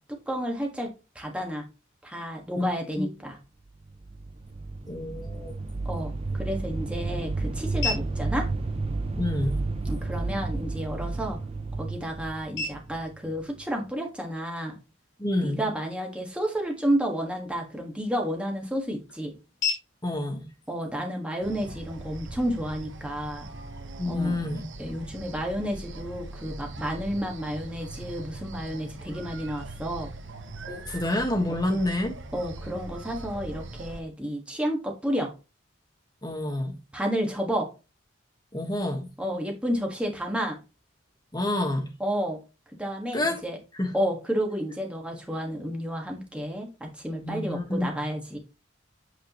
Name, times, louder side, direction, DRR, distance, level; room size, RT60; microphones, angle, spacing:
voice 1, 0.1-0.9 1.1-1.6 2.0-3.4 5.8-8.5 9.8-11.4 11.8-14.8 15.4-19.3 20.7-23.5 24.0-24.4 24.8-30.1 31.5-31.8 32.3-35.3 36.9-37.7 39.2-40.6 42.0-42.4 42.8-43.6 43.9-48.4, equal, 5° right, 1.5 m, -31 dB
sound 1, 3.8-13.7, right 3 dB, 30° right, 0.5 m, -32 dB
voice 2, 4.9-5.6 9.2-9.6 15.2-15.7 20.0-20.5 24.0-24.6 30.7-32.1 36.2-36.8 38.5-39.1 41.3-41.9 43.1-43.4 43.7-43.9 47.2-47.9, left 1 dB, 20° left, 1.3 m, -28 dB
sound 2, 6.0-22.0, left 4 dB, 85° left, 3.8 m, -41 dB
sound 3, 21.4-34.0, right 2 dB, 65° right, 1.0 m, -41 dB
8.2 x 5.0 x 2.9 m
head